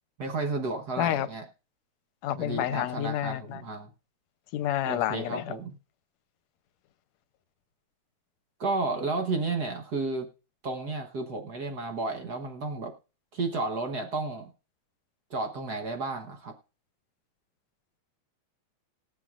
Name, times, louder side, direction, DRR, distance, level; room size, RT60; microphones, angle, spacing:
voice 1, 0.2-1.4 2.3-3.9 4.8-5.7 8.6-10.3 10.6-12.9 13.3-14.5 15.3-16.5, right 3 dB, 60° right, 1.0 m, -32 dB
voice 2, 1.0-1.3 2.2-3.6 4.5-5.5, left 12 dB, 75° left, 1.8 m, -29 dB
19.5 x 7.7 x 2.5 m
omnidirectional pair, 3.3 m